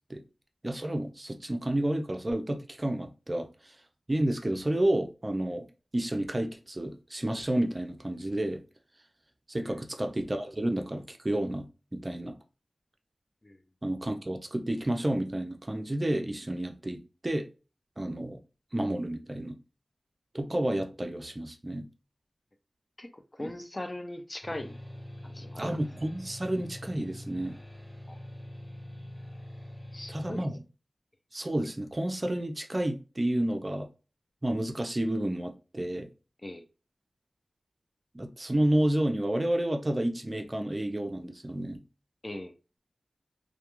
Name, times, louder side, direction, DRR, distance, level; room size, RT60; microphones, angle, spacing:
voice 1, 0.6-3.8 4.1-5.6 5.9-8.6 9.5-11.7 11.9-12.4 13.8-17.5 18.0-18.4 18.7-19.6 20.3-21.9 23.4-23.5 25.6-27.6 30.1-30.6 31.3-33.9 34.4-36.1 38.1-41.8, right 1 dB, 30° right, 0.4 m, -30 dB
voice 2, 23.0-24.8 25.2-25.7 28.1-28.2 29.9-30.4 36.4-36.7 42.2-42.5, left 1 dB, 30° left, 0.4 m, -40 dB
sound 1, 24.4-30.4, left 1 dB, 15° left, 1.1 m, -44 dB
2.2 x 2.2 x 2.9 m
wide cardioid pair, 60°, 0 cm